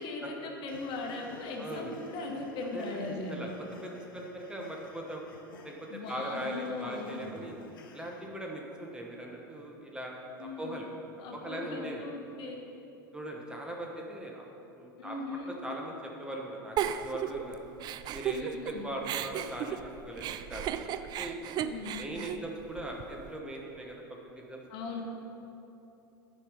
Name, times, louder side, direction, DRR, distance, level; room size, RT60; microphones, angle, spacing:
voice 1, 0.0-3.5 5.9-7.2 10.4-10.8 11.2-12.6 15.0-15.5 18.3-18.9 21.6-22.1 24.7-25.0, left 3 dB, 45° left, 1 dB, 1.4 m, -39 dB
sound 1, 0.7-8.3, left 4 dB, 75° left, 0.9 m, -53 dB
voice 2, 1.6-1.9 2.7-3.5 3.8-5.2 5.6-7.5 7.9-10.9 11.3-12.0 13.1-14.4 14.7-15.2 15.6-17.6 18.1-20.9 21.2-21.4 22.0-24.6, right 1 dB, 5° right, -1 dB, 1.2 m, -40 dB
Giggle, 16.8-18.7 19.0-23.3, right 10 dB, 40° right, 0.4 m, -35 dB
9.8 x 5.5 x 5.2 m, 2.9 s
hypercardioid pair, 90°, 12 cm